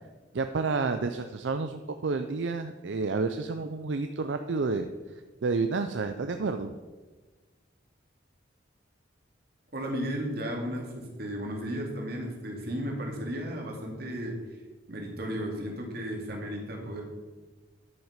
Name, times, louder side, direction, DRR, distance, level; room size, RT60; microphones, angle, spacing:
voice 1, 0.3-4.9 5.4-6.7, right 4 dB, 75° right, 7 dB, 0.5 m, -30 dB
voice 2, 9.7-14.4 14.9-17.0, equal, 55° right, 1 dB, 2.3 m, -34 dB
10.5 x 5.9 x 5.7 m, 1.3 s
head